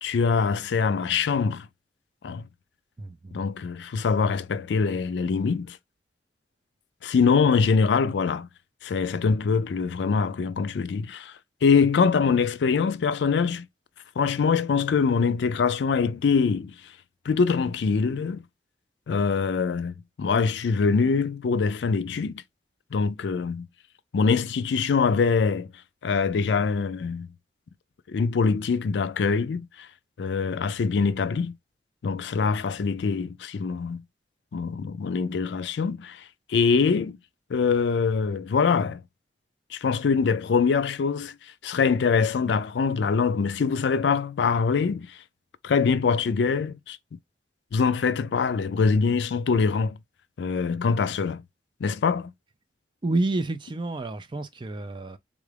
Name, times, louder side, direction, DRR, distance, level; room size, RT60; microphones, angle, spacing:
voice 1, 0.0-1.7 2.2-2.4 3.3-5.8 7.0-8.5 8.8-11.3 11.6-13.7 14.2-16.7 17.3-18.4 19.1-22.4 22.9-23.7 24.1-25.7 26.0-27.3 28.1-29.9 30.2-31.5 32.0-34.0 34.5-36.2 36.5-37.2 37.5-39.0 39.7-41.3 41.6-45.1 45.6-47.0 47.7-50.0 50.4-51.4 51.8-52.3, left 5 dB, 70° left, 0.4 m, -24 dB
voice 2, 3.0-3.4 53.0-55.2, right 2 dB, 25° right, 0.4 m, -29 dB
3.6 x 2.4 x 3.2 m
head